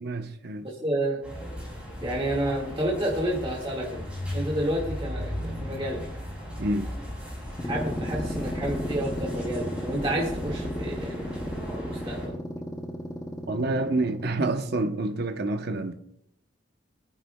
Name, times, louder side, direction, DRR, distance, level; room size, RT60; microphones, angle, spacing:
voice 1, 0.0-0.7 6.6-7.0 13.5-15.9, right 2 dB, 55° right, 0.8 m, -28 dB
voice 2, 0.8-1.2 2.0-4.0 4.3-6.0 7.7-12.4, right 1 dB, 30° right, 1.8 m, -30 dB
sound 1, 1.2-12.3, equal, 5° right, 6.0 m, -36 dB
sound 2, 7.4-14.8, equal, 15° left, 0.7 m, -35 dB
26.5 x 9.9 x 2.2 m
head